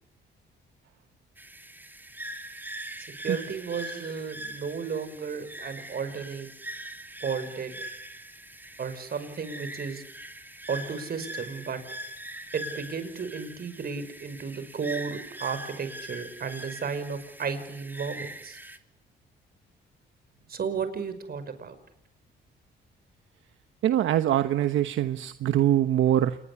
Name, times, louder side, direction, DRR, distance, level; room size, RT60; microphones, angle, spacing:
sound 1, 1.4-18.8, right 1 dB, 10° right, 2.9 m, -42 dB
voice 1, 3.2-6.5 7.2-7.7 8.8-10.0 10.7-11.8 12.5-18.6 20.5-21.8, right 5 dB, 50° right, 11 dB, 5.7 m, -33 dB
voice 2, 23.8-26.4, right 12 dB, 75° right, 10 dB, 1.2 m, -23 dB
28.0 x 21.5 x 8.4 m, 0.84 s
cardioid pair, 90°, 20 cm